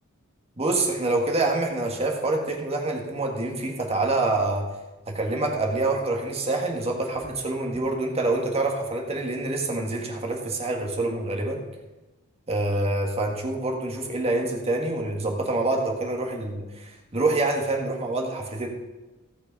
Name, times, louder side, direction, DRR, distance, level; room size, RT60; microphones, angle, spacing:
voice 1, 0.6-4.7 5.1-11.6 12.5-18.7, right 2 dB, 30° right, 1 dB, 1.7 m, -26 dB
16.5 x 6.2 x 5.3 m, 1.1 s
head